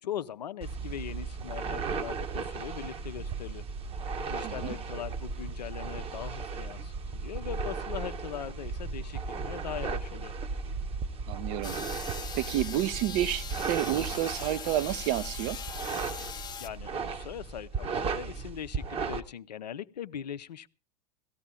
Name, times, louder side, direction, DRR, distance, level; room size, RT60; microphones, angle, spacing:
voice 1, 0.0-3.7 4.3-10.3 16.6-20.7, left 9 dB, 75° left, 0.6 m, -40 dB
sound 1, 0.6-19.2, right 4 dB, 25° right, 1.0 m, -36 dB
voice 2, 4.4-4.7 11.3-15.6, right 13 dB, 45° right, 0.6 m, -30 dB
sound 2, 11.6-16.7, left 7 dB, 20° left, 0.9 m, -41 dB
17.5 x 14.0 x 3.6 m
figure-of-eight pair, 85°, 21 cm